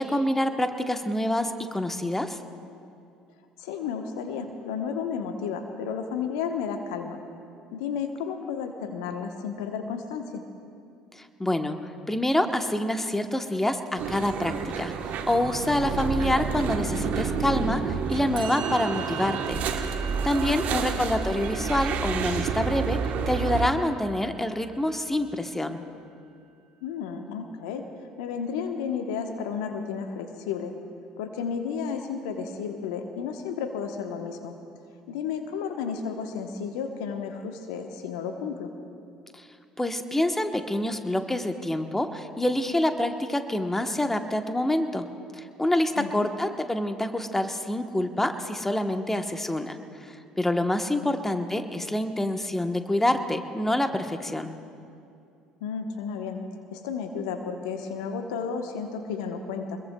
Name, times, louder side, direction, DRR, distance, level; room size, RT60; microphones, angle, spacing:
voice 1, 0.0-2.4 11.1-19.6 20.2-25.8 39.3-39.5 39.8-45.1 45.3-54.5, left 1 dB, 10° left, 7 dB, 1.1 m, -27 dB
voice 2, 3.6-7.2 7.7-10.4 20.5-20.9 26.8-27.8 28.2-30.7 31.2-34.6 35.1-38.7 46.0-46.3 51.2-51.4 55.6-56.4 56.7-59.8, left 6 dB, 75° left, 5 dB, 1.0 m, -32 dB
sound 1, 14.0-23.7, right 6 dB, 55° right, 1.1 m, -29 dB
Musical instrument, 18.3-25.6, right 7 dB, 70° right, 1.5 m, -43 dB
25.0 x 21.5 x 2.3 m, 2.5 s
hypercardioid pair, 60°, 3 cm